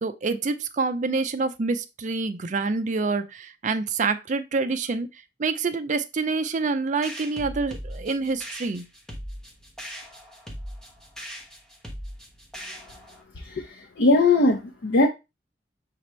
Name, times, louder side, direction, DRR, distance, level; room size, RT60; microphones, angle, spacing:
voice 1, 0.0-5.1 5.4-8.9, right 4 dB, 45° right, 0.5 m, -27 dB
sound 1, 7.0-13.2, equal, 5° left, 1.0 m, -39 dB
voice 2, 13.4-15.1, left 2 dB, 85° left, 0.7 m, -20 dB
5.9 x 2.9 x 3.1 m
head